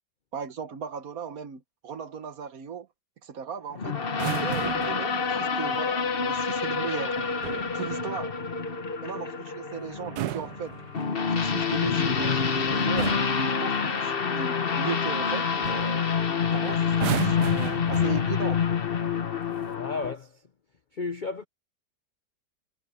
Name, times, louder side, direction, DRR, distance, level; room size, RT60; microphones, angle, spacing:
voice 1, 0.3-2.9 3.2-4.0 4.4-7.3 7.7-8.3 9.0-10.7 11.3-16.0 16.5-18.6, right 7 dB, 55° right, 1.4 m, -37 dB
sound 1, 3.8-20.1, left 6 dB, 35° left, 1.1 m, -27 dB
sound 2, 4.1-5.1 7.2-7.8 9.9-11.3 12.3-12.6 13.0-13.5 15.1-15.3 15.6-15.9 16.9-18.6 19.5-19.7, right 15 dB, 70° right, 1.1 m, -34 dB
voice 2, 19.8-20.5 20.9-21.4, left 4 dB, 70° left, 0.4 m, -33 dB
omnidirectional pair, 1.9 m